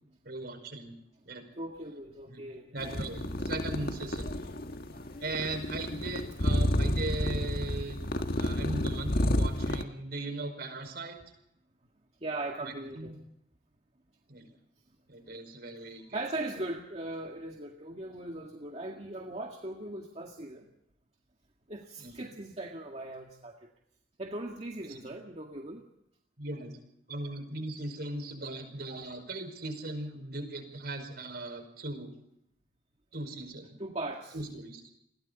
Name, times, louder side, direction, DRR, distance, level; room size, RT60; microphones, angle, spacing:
voice 1, 0.3-1.0 1.2-1.5 2.3-2.4 2.7-4.3 5.2-8.1 8.4-11.2 12.6-13.2 14.3-14.5 15.1-16.2 22.0-22.3 24.8-25.0 26.4-26.8 27.1-32.1 33.1-33.8 34.3-34.8, right 2 dB, 60° right, 7 dB, 5.3 m, -38 dB
voice 2, 1.6-3.0 12.2-13.1 16.1-20.7 21.7-23.6 24.2-25.8 33.8-34.3, right 2 dB, 35° right, 1 dB, 2.0 m, -39 dB
sound 1, 2.8-9.8, left 1 dB, 60° left, 1.6 m, -30 dB
29.5 x 22.0 x 4.1 m, 0.77 s
head